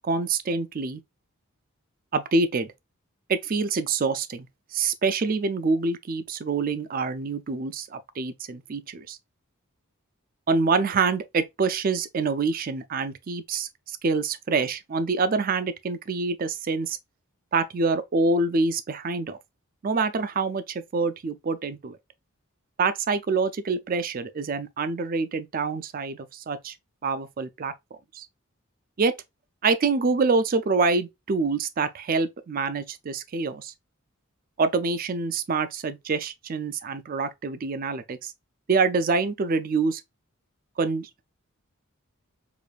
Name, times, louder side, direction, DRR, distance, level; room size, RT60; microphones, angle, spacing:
voice 1, 0.0-1.0 2.1-2.7 3.3-4.5 4.7-9.2 10.5-17.0 17.5-19.4 19.8-22.0 22.8-26.7 27.0-27.7 28.1-28.3 29.0-29.2 29.6-33.7 34.6-38.3 38.7-40.0 40.8-41.1, right 4 dB, 40° right, 0.4 m, -26 dB
4.9 x 2.6 x 2.3 m
head